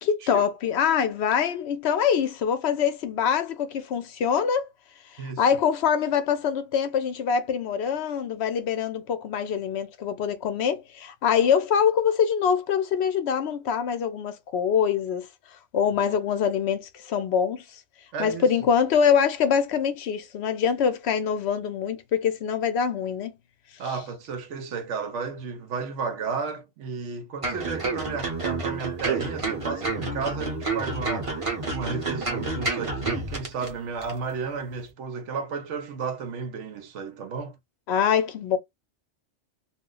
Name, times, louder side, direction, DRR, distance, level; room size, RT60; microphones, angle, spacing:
voice 1, 0.0-4.7 5.1-15.3 15.7-17.6 18.2-23.3 37.9-38.6, left 7 dB, 65° left, 0.8 m, -24 dB
voice 2, 18.1-18.5 23.8-31.4 31.7-37.6, right 5 dB, 80° right, 1.0 m, -33 dB
sound 1, 27.4-33.7 34.0-34.1, right 3 dB, 30° right, 0.9 m, -29 dB
2.4 x 2.1 x 3.7 m
omnidirectional pair, 1.2 m